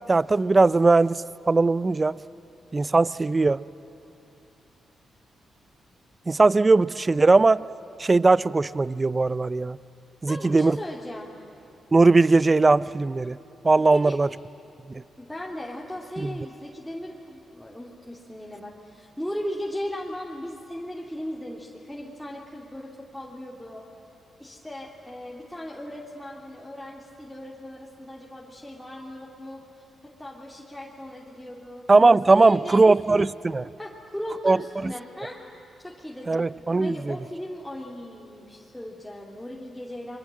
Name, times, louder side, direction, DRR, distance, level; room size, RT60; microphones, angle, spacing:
voice 1, 0.1-2.2 2.7-3.6 6.3-7.6 8.0-9.8 10.2-10.8 11.9-13.4 13.6-14.3 16.2-16.4 31.9-33.7 34.4-34.6 34.8-34.9 36.3-37.2, right 3 dB, 30° right, 19 dB, 0.5 m, -19 dB
voice 2, 10.3-11.3 13.9-14.2 15.2-23.8 24.4-29.6 30.2-31.9 32.3-33.2 33.8-35.4 35.8-36.5 36.8-40.2, equal, 5° left, -4 dB, 2.8 m, -37 dB
26.5 x 22.5 x 7.6 m, 3.0 s
supercardioid pair, 60°, 0 cm